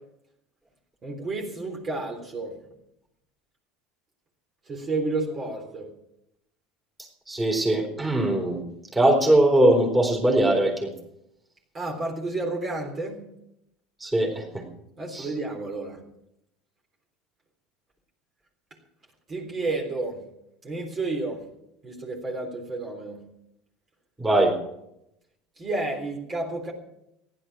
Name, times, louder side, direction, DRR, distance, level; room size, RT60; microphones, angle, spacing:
voice 1, 1.0-2.5 4.7-5.9 11.7-13.2 15.0-16.0 19.3-20.2 20.6-21.4 21.8-23.2 25.6-26.7, right 2 dB, 30° right, 0 dB, 3.6 m, -31 dB
voice 2, 7.3-8.6 8.9-10.9 14.0-14.4 15.1-15.3 24.2-24.5, right 1 dB, 10° right, 2 dB, 4.0 m, -21 dB
15.0 x 11.5 x 6.2 m, 0.80 s
supercardioid pair, 120°, 0 cm